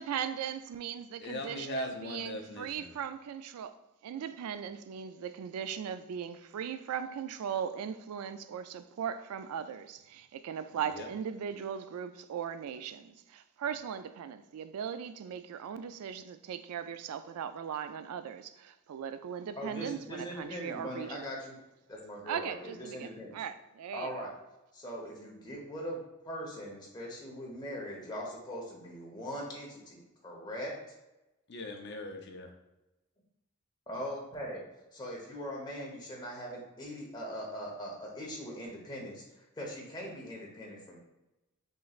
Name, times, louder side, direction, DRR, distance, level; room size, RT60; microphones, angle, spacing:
voice 1, 0.0-3.7 4.0-21.2 22.3-24.3, right 8 dB, 85° right, 0.3 m, -38 dB
voice 2, 1.2-3.0 10.8-11.1 31.5-32.5, left 1 dB, 50° left, 0.6 m, -40 dB
voice 3, 19.6-21.6 21.9-23.4 23.9-24.3 24.7-26.0 26.2-30.7 33.9-34.6 34.9-41.0, equal, 20° left, 1.0 m, -41 dB
5.5 x 3.2 x 2.4 m
head